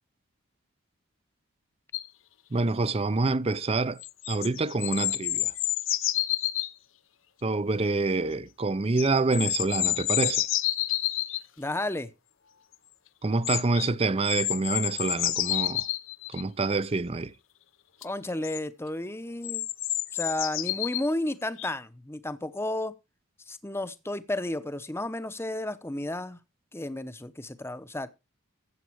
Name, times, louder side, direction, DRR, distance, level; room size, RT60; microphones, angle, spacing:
sound 1, 1.9-2.1 4.0-6.7 9.0-11.4 13.4-13.9 14.3-16.4 18.0-18.1 18.4-18.6 19.4-21.1 21.6-21.7, left 15 dB, 65° left, 0.7 m, -29 dB
voice 1, 2.5-4.0 4.3-5.5 7.4-10.5 13.2-15.8 16.3-17.3, right 3 dB, 30° right, 0.5 m, -27 dB
voice 2, 11.6-12.1 18.0-19.6 20.1-22.9 23.5-26.4 26.7-28.1, left 1 dB, 10° left, 0.8 m, -32 dB
14.5 x 8.0 x 4.6 m
head